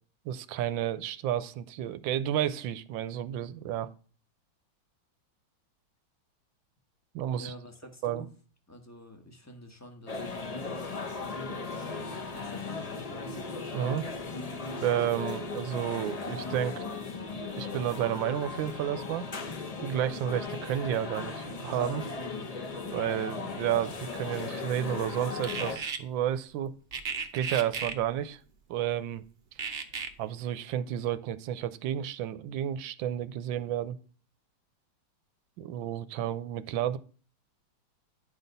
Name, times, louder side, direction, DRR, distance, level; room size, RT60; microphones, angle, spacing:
voice 1, 0.3-3.9 7.1-7.5 8.0-8.2 13.7-14.1 14.8-16.8 17.6-19.2 19.8-22.0 22.9-26.7 27.3-28.4 28.7-29.2 30.2-34.0 35.6-37.0, right 11 dB, 75° right, 1.3 m, -31 dB
voice 2, 7.3-8.3 8.7-10.6 11.7-13.5, left 1 dB, 10° left, 0.8 m, -49 dB
sound 1, 10.1-25.8, left 4 dB, 50° left, 0.4 m, -37 dB
sound 2, 25.4-26.0 26.9-28.0 29.6-30.1, right 6 dB, 50° right, 0.7 m, -34 dB
10.5 x 4.1 x 5.3 m
omnidirectional pair, 2.2 m